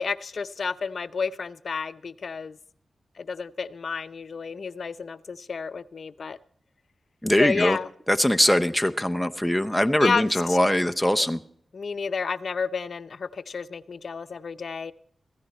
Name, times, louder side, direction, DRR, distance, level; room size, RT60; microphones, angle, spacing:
voice 1, 0.0-2.6 3.2-6.4 7.4-7.9 10.0-10.6 11.1-11.3 11.7-14.9, left 5 dB, 65° left, 14 dB, 0.6 m, -31 dB
voice 2, 7.2-7.8 8.1-11.4, left 1 dB, 5° left, 7 dB, 0.7 m, -22 dB
15.5 x 15.0 x 4.3 m, 0.63 s
cardioid pair, 50°, 0 cm